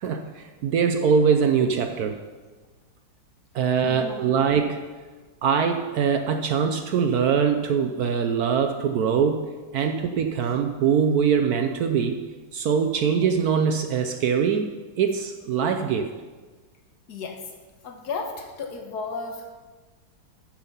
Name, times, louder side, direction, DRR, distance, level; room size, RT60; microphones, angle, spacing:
voice 1, 0.0-2.2 3.5-4.8 5.4-9.5 9.7-12.2 12.5-14.7 15.0-16.1, right 6 dB, 65° right, 6 dB, 1.0 m, -23 dB
voice 2, 3.8-4.4 10.3-10.6 17.1-17.4 17.8-19.6, left 4 dB, 60° left, 3 dB, 1.7 m, -34 dB
13.5 x 5.5 x 5.5 m, 1.3 s
omnidirectional pair, 2.0 m